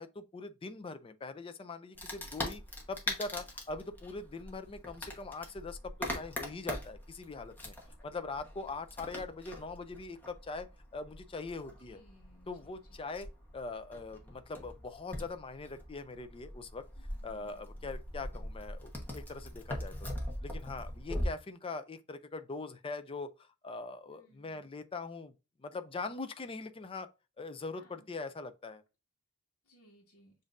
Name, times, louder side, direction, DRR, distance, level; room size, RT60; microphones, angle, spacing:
voice 1, 0.0-2.6 2.9-7.7 8.0-12.0 12.5-13.3 13.5-16.8 17.2-20.1 20.4-25.3 25.6-27.1 27.4-28.8, left 3 dB, 25° left, 0.4 m, -42 dB
Wood, 1.9-21.3, left 1 dB, 10° left, 1.0 m, -42 dB
voice 2, 11.7-12.8 17.1-17.6 24.1-24.7 27.7-28.1 29.7-30.3, equal, 85° left, 1.2 m, -63 dB
7.0 x 2.6 x 2.5 m
head